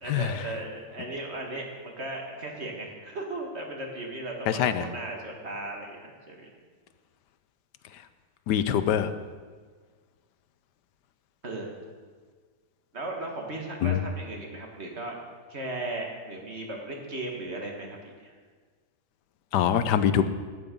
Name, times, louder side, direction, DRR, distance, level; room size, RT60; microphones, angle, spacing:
voice 1, 0.0-6.5 11.4-11.7 12.9-15.2 15.5-18.3, right 2 dB, 40° right, 1 dB, 2.0 m, -36 dB
voice 2, 4.5-4.9 8.5-9.1 13.8-14.0 19.5-20.3, left 9 dB, 85° left, 12 dB, 1.3 m, -24 dB
14.0 x 9.6 x 5.2 m, 1.6 s
omnidirectional pair, 1.8 m